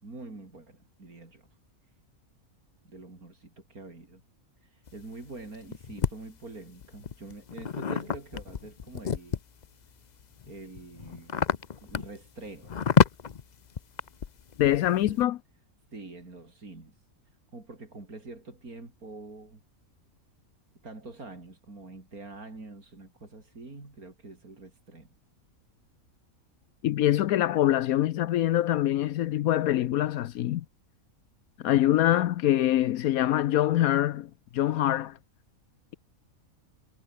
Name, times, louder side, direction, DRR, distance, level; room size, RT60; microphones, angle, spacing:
voice 1, 0.0-1.5 2.8-4.2 4.6-9.4 10.5-11.5 11.8-12.8 14.9-15.2 15.9-16.9 17.5-19.6 20.8-25.1, right 3 dB, 85° right, 5.2 m, -45 dB
sound 1, 4.9-6.1 6.8-9.7 10.2-15.2, left 7 dB, 45° left, 0.6 m, -28 dB
voice 2, 14.6-15.4 26.8-30.6 31.6-35.2, left 13 dB, 75° left, 1.1 m, -24 dB
omnidirectional pair, 1.5 m